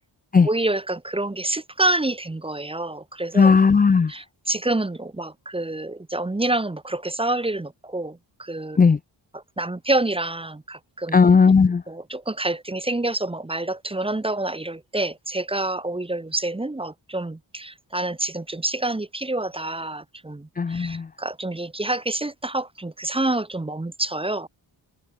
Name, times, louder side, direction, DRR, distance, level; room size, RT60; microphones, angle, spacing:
voice 1, 0.4-3.5 4.1-8.8 9.3-11.2 11.9-24.5, right 2 dB, 10° right, 0.7 m, -27 dB
voice 2, 3.4-4.1 8.8-9.0 11.1-11.8 20.6-21.1, left 5 dB, 20° left, 0.3 m, -16 dB
wide cardioid pair, 130°, 46 cm